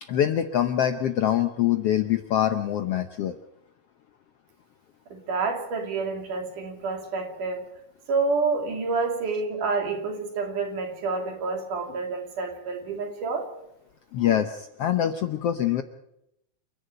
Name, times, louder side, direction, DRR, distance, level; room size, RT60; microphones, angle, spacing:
voice 1, 0.0-3.3 14.1-15.8, left 10 dB, 70° left, 8 dB, 1.5 m, -24 dB
voice 2, 5.1-7.7 8.1-13.5, right 4 dB, 75° right, 3 dB, 4.4 m, -28 dB
28.5 x 11.0 x 9.1 m, 0.84 s
omnidirectional pair, 3.7 m